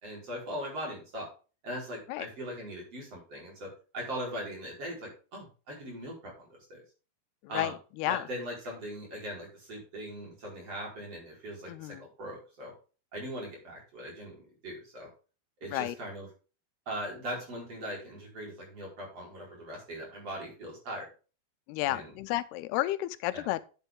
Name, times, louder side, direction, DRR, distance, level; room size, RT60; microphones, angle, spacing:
voice 1, 0.0-1.3 1.6-3.7 3.9-6.8 7.5-7.7 8.1-12.7 13.1-15.1 15.6-16.3 16.9-21.0 21.8-22.1 23.3-23.4, equal, 40° right, 5.6 m, -40 dB
voice 2, 7.5-8.2 11.7-12.0 15.7-16.0 21.7-23.6, left 16 dB, 85° left, 2.6 m, -32 dB
10.5 x 7.6 x 3.7 m
omnidirectional pair, 4.5 m